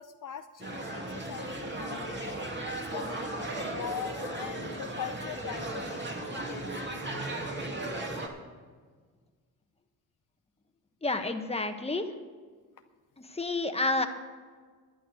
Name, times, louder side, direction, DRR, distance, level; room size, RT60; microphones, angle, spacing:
voice 1, 0.0-2.4 2.9-7.0, left 9 dB, 55° left, 8 dB, 0.6 m, -42 dB
sound 1, 0.6-8.3, right 2 dB, 30° right, 2.4 m, -36 dB
voice 2, 11.0-12.2 13.2-14.1, left 2 dB, 15° left, 6 dB, 1.4 m, -30 dB
11.0 x 10.0 x 6.5 m, 1.5 s
cardioid pair, 65°, 37 cm